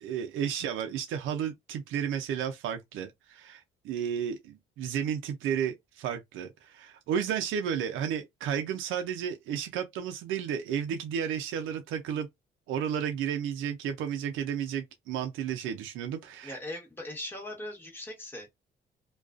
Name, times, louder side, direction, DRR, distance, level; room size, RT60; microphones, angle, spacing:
voice 1, 0.0-12.3 12.7-16.6, right 8 dB, 90° right, 0.5 m, -32 dB
voice 2, 16.4-18.5, left 1 dB, 10° left, 1.1 m, -40 dB
2.3 x 2.2 x 2.4 m
cardioid pair, 90°, 20 cm